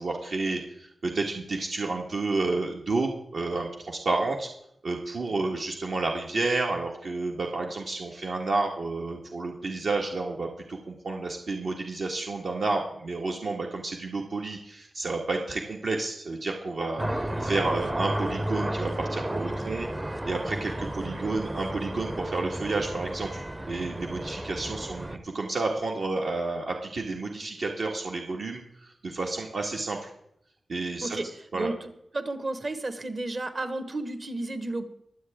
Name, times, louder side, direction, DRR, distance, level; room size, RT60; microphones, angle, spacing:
voice 1, 0.0-4.5 4.8-30.1 30.7-31.2 31.5-31.7, right 3 dB, 60° right, 0 dB, 1.6 m, -30 dB
sound 1, 17.0-25.2, right 1 dB, 15° right, 0.7 m, -33 dB
voice 2, 31.5-34.8, right 2 dB, 40° right, 9 dB, 1.3 m, -32 dB
23.5 x 8.0 x 3.6 m, 0.77 s
wide cardioid pair, 180°, 0 cm